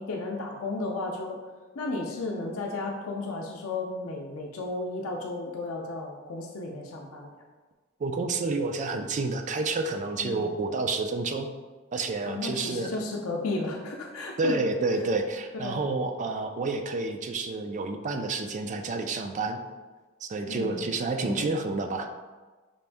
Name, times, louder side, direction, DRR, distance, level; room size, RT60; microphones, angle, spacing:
voice 1, 0.0-1.4 1.8-7.4 10.2-10.5 12.3-14.6 15.6-15.8 20.5-20.9 21.2-21.5, left 2 dB, 85° left, 1 dB, 0.5 m, -33 dB
voice 2, 8.0-11.5 11.9-12.9 14.4-19.6 20.2-22.1, right 3 dB, 35° right, 6 dB, 0.3 m, -29 dB
5.3 x 2.5 x 3.4 m, 1.3 s
head